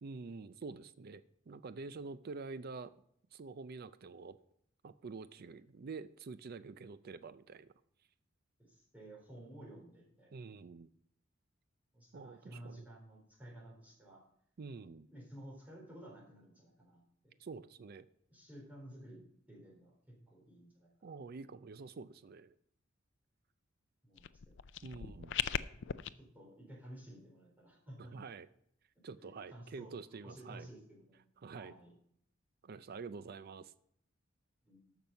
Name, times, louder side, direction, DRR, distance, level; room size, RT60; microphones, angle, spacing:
voice 1, 0.0-2.9 3.3-4.4 4.8-7.7 10.3-10.9 12.1-12.8 14.6-15.1 17.4-18.1 21.0-22.5 24.8-25.4 28.0-28.5 29.0-30.7 31.4-31.7 32.6-33.7, right 4 dB, 50° right, 14 dB, 0.4 m, -47 dB
voice 2, 8.6-10.3 11.9-14.2 15.1-17.0 18.3-19.9 20.3-21.1 24.0-24.6 25.0-25.3 25.7-28.1 29.2-29.9 30.2-31.2 31.6-31.9 34.6-35.0, right 1 dB, 10° right, -3 dB, 4.0 m, -54 dB
sound 1, 24.2-26.1, left 9 dB, 65° left, 0.4 m, -38 dB
14.0 x 6.1 x 5.4 m, 0.69 s
head